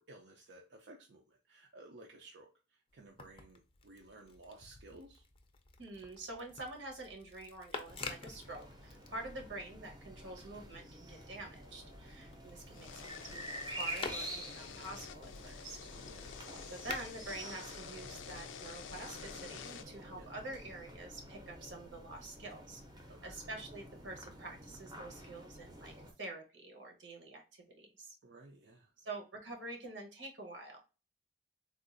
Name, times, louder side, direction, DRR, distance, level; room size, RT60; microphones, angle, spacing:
voice 1, 0.0-5.3 16.1-16.3 20.1-20.3 23.1-23.4 28.2-28.9, right 2 dB, 70° right, 1 dB, 0.5 m, -56 dB
sound 1, 2.9-9.9 10.3-18.4 19.2-20.0, left 4 dB, 30° left, 0.4 m, -50 dB
voice 2, 5.8-15.9 16.7-22.8 23.2-28.2 29.0-30.8, right 2 dB, 85° right, 2 dB, 1.1 m, -47 dB
sound 2, 7.9-26.1, right 1 dB, 20° right, 0.6 m, -49 dB
sound 3, 12.7-19.8, left 7 dB, 90° left, 0.4 m, -49 dB
3.6 x 2.4 x 2.5 m, 0.32 s
head